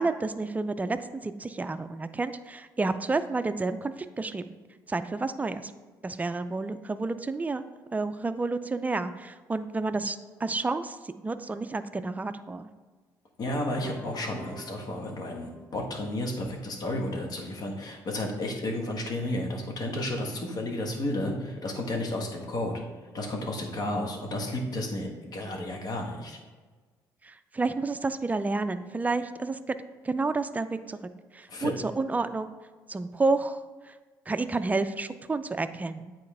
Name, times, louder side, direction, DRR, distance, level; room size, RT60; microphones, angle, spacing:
voice 1, 0.0-4.6 4.9-5.7 6.0-7.6 7.9-12.7 23.9-24.1 27.2-29.8 30.0-31.0 31.3-32.5 32.9-33.9 34.3-36.2, right 3 dB, 20° right, 11 dB, 0.4 m, -30 dB
voice 2, 13.4-22.8 23.1-26.4 31.5-31.7, left 1 dB, 50° left, 1 dB, 1.3 m, -32 dB
sound 1, 13.8-16.8, right 1 dB, ahead, 0.9 m, -49 dB
8.3 x 4.3 x 3.3 m, 1.4 s
supercardioid pair, 75°, 8 cm